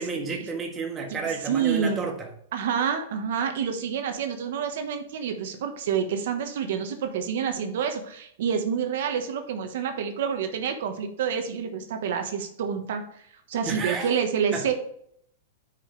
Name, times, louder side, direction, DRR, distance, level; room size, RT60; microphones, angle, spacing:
voice 1, 0.0-2.3 13.6-14.1 14.5-14.7, right 4 dB, 15° right, 1.4 m, -31 dB
voice 2, 1.4-2.0 2.5-13.0 13.5-14.7, right 7 dB, 65° right, 1.3 m, -28 dB
9.8 x 5.2 x 3.3 m
supercardioid pair, 155°, 0 cm